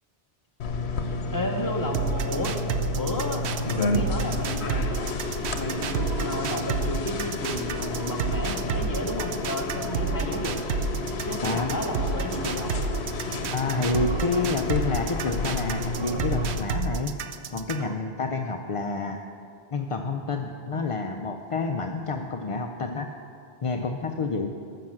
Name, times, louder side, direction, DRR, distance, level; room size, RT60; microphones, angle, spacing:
sound 1, 0.6-16.6, left 3 dB, 90° left, 1.1 m, -31 dB
voice 1, 1.3-2.6 2.9-5.2 5.6-10.6 11.3-12.8, left 1 dB, 20° left, 2 dB, 1.1 m, -32 dB
sound 2, 1.9-17.9, right 5 dB, 90° right, 0.9 m, -30 dB
voice 2, 11.4-11.9 13.5-17.1 17.5-19.2 19.7-23.1 23.6-24.5, left 3 dB, 45° left, 4 dB, 0.5 m, -28 dB
13.0 x 5.9 x 7.7 m, 2.3 s
omnidirectional pair, 1.1 m